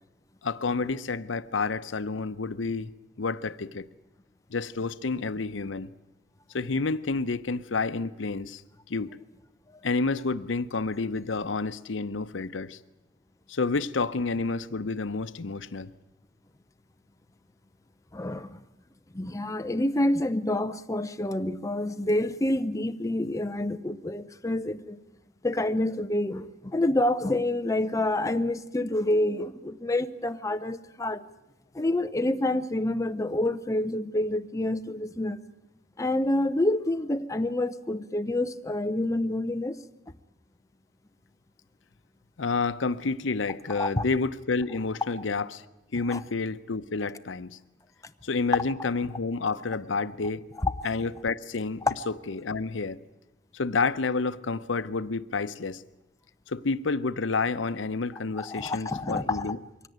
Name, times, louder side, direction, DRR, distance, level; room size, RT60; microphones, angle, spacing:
voice 1, 0.4-2.9 3.2-3.8 4.5-5.9 6.5-8.6 8.9-9.1 9.8-12.8 13.5-15.9 42.4-45.6 45.9-47.6 48.2-50.4 50.8-51.8 52.3-53.0 53.5-55.8 56.5-59.6, left 4 dB, 90° left, 0.8 m, -29 dB
voice 2, 18.1-18.6 19.1-25.0 25.4-31.2 31.7-35.4 36.0-39.8 43.7-44.0 46.1-46.2 50.6-50.7 51.8-51.9 58.4-59.5, left 1 dB, 20° left, 0.7 m, -28 dB
23.0 x 17.0 x 9.4 m
head